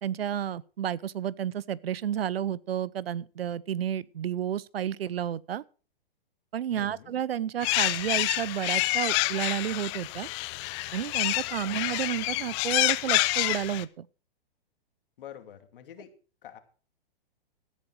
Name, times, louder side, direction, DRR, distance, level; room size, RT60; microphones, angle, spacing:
voice 1, 0.0-5.6 6.5-10.3 10.9-14.1, right 10 dB, 85° right, 0.7 m, -31 dB
voice 2, 6.7-7.1 11.6-11.8 15.2-16.1 16.4-16.6, left 10 dB, 65° left, 2.6 m, -46 dB
sound 1, 7.6-13.8, left 21 dB, 30° left, 0.6 m, -28 dB
13.0 x 10.0 x 4.8 m
hypercardioid pair, 135°, 29 cm